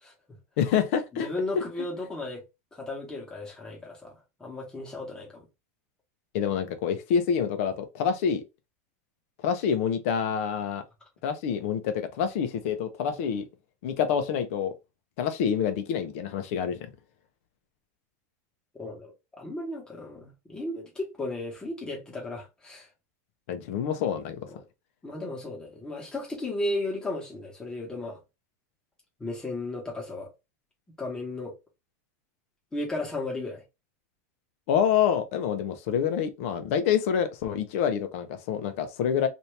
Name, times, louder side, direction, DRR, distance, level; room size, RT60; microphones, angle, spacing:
voice 1, 0.6-1.6 6.3-8.4 9.4-10.8 11.2-13.5 13.8-14.7 15.2-16.8 23.5-24.4 34.7-39.3, left 8 dB, 55° left, 0.7 m, -27 dB
voice 2, 1.1-2.4 2.7-5.5 18.7-22.9 24.5-24.6 25.0-28.2 29.2-30.3 31.0-31.5 32.7-33.6, left 2 dB, 10° left, 1.1 m, -35 dB
2.8 x 2.6 x 3.2 m
supercardioid pair, 160°, 9 cm